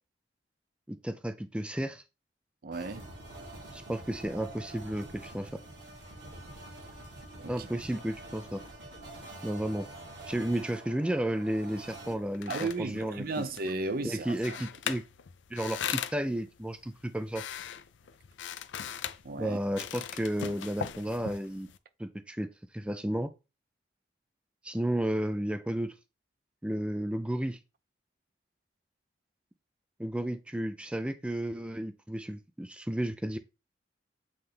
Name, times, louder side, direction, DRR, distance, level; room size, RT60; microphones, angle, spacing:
voice 1, 0.9-2.0 3.7-5.6 7.5-8.6 9.4-9.9 10.3-13.4 14.0-15.0 15.5-17.4 19.4-21.7 22.0-22.5 22.7-23.3 24.6-25.9 26.6-27.6 30.0-33.4, right 1 dB, 5° right, 0.4 m, -33 dB
voice 2, 2.6-3.1 7.4-7.7 12.5-14.6 19.2-19.6, right 3 dB, 55° right, 0.6 m, -35 dB
sound 1, 2.7-12.1, right 2 dB, 70° right, 2.1 m, -46 dB
sound 2, 12.1-21.8, left 8 dB, 90° left, 0.5 m, -40 dB
7.7 x 3.7 x 3.3 m
head